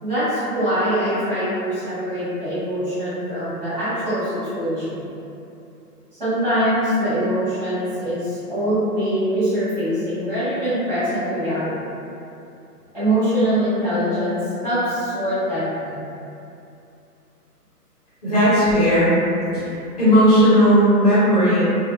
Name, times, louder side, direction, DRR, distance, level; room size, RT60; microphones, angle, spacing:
voice 1, 0.0-5.0 6.2-11.7 12.9-16.0, equal, 25° right, -15 dB, 1.0 m, -23 dB
voice 2, 18.2-19.1 19.5-19.6 20.0-21.6, equal, 25° left, -13 dB, 0.7 m, -15 dB
2.4 x 2.3 x 2.5 m, 2.7 s
hypercardioid pair, 175°, 48 cm